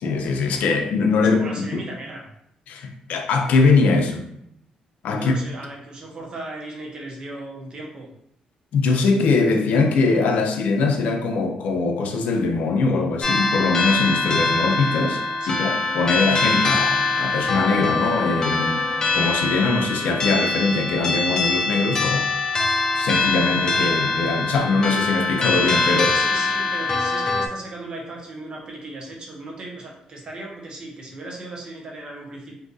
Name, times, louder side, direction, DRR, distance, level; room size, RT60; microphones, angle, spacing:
voice 1, 0.0-1.8 2.7-4.3 5.0-5.3 8.7-15.2 15.5-18.8 19.1-22.3 22.9-26.2, left 4 dB, 75° left, 0.5 m, -22 dB
voice 2, 1.2-2.3 5.1-8.1 15.4-15.8 26.1-32.6, right 2 dB, 35° right, 0.8 m, -36 dB
sound 1, 13.2-27.5, left 3 dB, 25° left, 0.5 m, -23 dB
2.7 x 2.5 x 3.8 m
cardioid pair, 150°, 3 cm